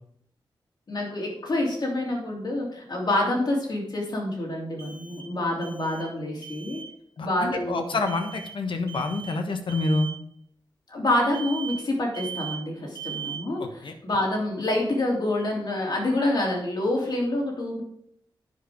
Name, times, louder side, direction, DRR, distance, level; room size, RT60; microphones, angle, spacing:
voice 1, 0.9-6.8 7.2-7.9 10.9-17.8, left 1 dB, 60° left, -1 dB, 3.1 m, -27 dB
sound 1, 4.8-6.2 6.4-6.9 8.1-8.6 8.9-9.4 9.7-10.2 11.3-11.9 12.1-12.7 12.9-13.5, right 8 dB, 30° left, 1.8 m, -38 dB
voice 2, 7.2-10.1 13.6-13.9, left 3 dB, 75° left, 5 dB, 1.3 m, -27 dB
10.0 x 5.3 x 4.9 m, 0.69 s
wide cardioid pair, 95°, 8 cm